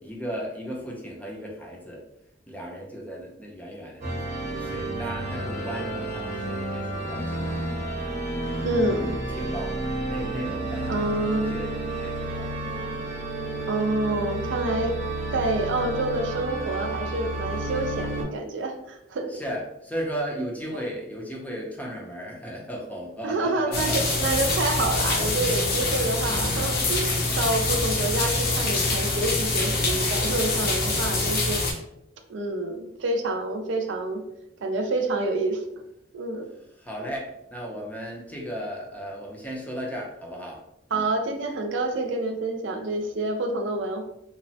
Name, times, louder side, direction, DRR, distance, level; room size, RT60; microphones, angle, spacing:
voice 1, 0.0-2.0 2.5-7.9 9.3-13.2 15.4-15.6 19.3-24.0 25.7-25.9 36.8-40.6 40.9-41.1, equal, 10° left, -2 dB, 0.5 m, -36 dB
sound 1, 4.0-18.2, right 1 dB, 50° right, 0.8 m, -31 dB
voice 2, 8.6-9.2 10.9-11.6 13.7-15.0 15.3-19.3 23.2-31.8 32.3-34.2 34.6-35.6 36.1-36.5 40.9-44.1, right 2 dB, 75° right, 4 dB, 0.4 m, -28 dB
sound 2, 23.7-31.7, left 2 dB, 55° left, 0.6 m, -25 dB
3.0 x 2.0 x 2.7 m, 0.81 s
head